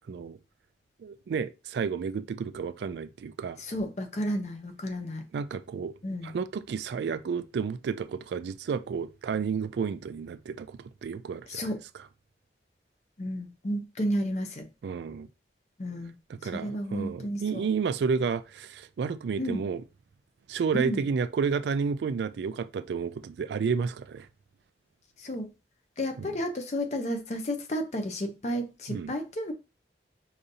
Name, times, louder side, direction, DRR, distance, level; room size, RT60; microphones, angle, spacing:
voice 1, 0.1-0.4 1.0-3.6 5.3-5.9 6.2-11.7 14.8-15.3 16.3-19.8 20.5-24.3 26.2-26.3 28.9-29.1, right 5 dB, 75° right, 0.3 m, -31 dB
voice 2, 3.6-5.2 6.0-6.3 11.5-11.8 13.2-14.7 15.8-16.1 16.5-17.7 19.4-19.7 20.7-21.0 25.2-25.5 26.0-29.5, equal, 40° left, 0.6 m, -32 dB
4.9 x 2.6 x 2.7 m
head